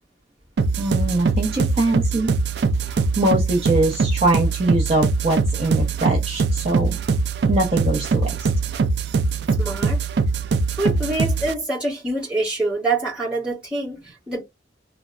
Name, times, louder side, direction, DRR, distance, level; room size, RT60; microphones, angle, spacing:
sound 1, 0.6-11.6, right 4 dB, 65° right, 0.4 m, -22 dB
voice 1, 0.8-2.3 2.9-7.0 7.5-8.5, right 2 dB, 35° right, 0.7 m, -22 dB
voice 2, 9.6-10.0 10.7-14.4, right 2 dB, 5° right, 1.6 m, -25 dB
3.3 x 2.0 x 2.4 m
head